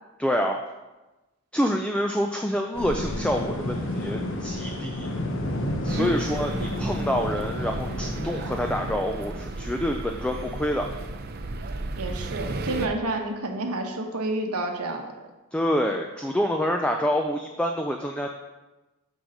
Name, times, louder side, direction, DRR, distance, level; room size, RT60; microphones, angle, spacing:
voice 1, 0.2-0.6 1.5-5.1 5.8-10.9 15.5-18.3, equal, 5° left, 3 dB, 0.3 m, -27 dB
sound 1, 2.7-8.9, left 1 dB, 55° left, 1.0 m, -31 dB
sound 2, 5.9-12.9, right 2 dB, 45° right, 0.5 m, -34 dB
voice 2, 12.0-15.1, right 2 dB, 85° right, 3 dB, 1.0 m, -29 dB
6.3 x 4.8 x 6.5 m, 1.1 s
head